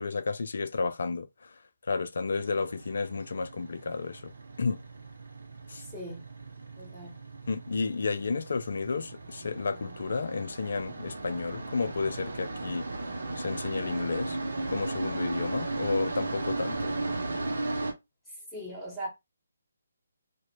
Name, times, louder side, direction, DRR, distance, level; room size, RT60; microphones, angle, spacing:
voice 1, 0.0-1.6 1.9-4.3 4.6-4.8 5.7-5.8 7.5-12.9 13.4-14.4 14.7-16.9, left 4 dB, 60° left, 0.3 m, -32 dB
sound 1, 2.3-17.9, right 2 dB, 70° right, 0.7 m, -36 dB
voice 2, 5.8-6.2 6.8-7.2 18.3-19.1, equal, 5° left, 1.3 m, -40 dB
2.5 x 2.2 x 2.9 m
figure-of-eight pair, 145°, 0 cm